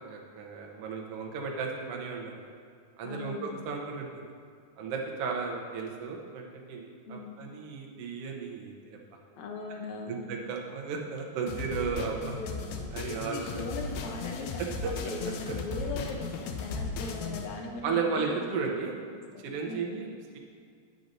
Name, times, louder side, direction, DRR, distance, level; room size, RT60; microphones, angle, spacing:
voice 1, 0.0-2.4 3.0-4.3 4.8-9.0 10.1-12.2 12.9-13.7 14.8-14.9 17.8-18.9 19.4-20.1, right 5 dB, 85° right, 0 dB, 1.3 m, -34 dB
voice 2, 3.0-3.6 7.1-7.4 9.4-10.3 12.1-12.7 13.1-18.4 19.7-19.9, left 3 dB, 70° left, 1 dB, 1.8 m, -39 dB
sound 1, 11.5-17.5, left 4 dB, 90° left, 1.5 m, -36 dB
9.6 x 7.5 x 2.6 m, 2.1 s
omnidirectional pair, 3.9 m